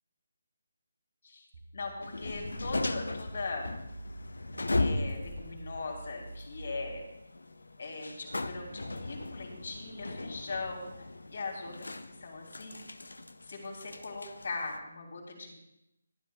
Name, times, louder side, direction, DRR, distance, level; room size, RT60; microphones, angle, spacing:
sound 1, 1.5-7.0, right 2 dB, 45° right, 1.5 m, -48 dB
voice 1, 1.7-3.8 4.7-7.0 7.8-10.9 11.3-11.9 12.2-12.8 13.4-15.5, left 3 dB, 60° left, 0 dB, 3.5 m, -40 dB
sound 2, 2.0-14.8, left 2 dB, 80° left, 0.7 m, -38 dB
22.5 x 9.8 x 2.4 m, 0.84 s
figure-of-eight pair, 150°, 0 cm